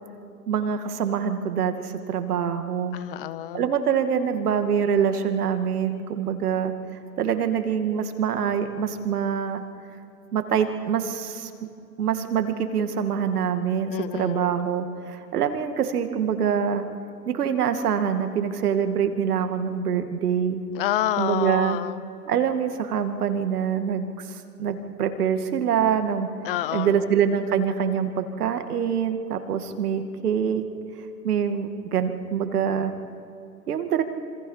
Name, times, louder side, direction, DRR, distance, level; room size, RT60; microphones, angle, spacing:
voice 1, 0.5-3.0 3.5-6.7 7.2-9.6 10.3-11.5 12.0-16.9 17.3-20.6 21.2-21.8 22.3-26.3 26.7-30.6 31.2-32.9 33.7-34.0, right 7 dB, 65° right, 7 dB, 2.3 m, -25 dB
voice 2, 2.9-3.7 13.9-14.6 20.7-22.0 26.4-27.1, left 12 dB, 35° left, 15 dB, 0.7 m, -28 dB
27.0 x 25.5 x 5.7 m, 2.5 s
hypercardioid pair, 125°, 49 cm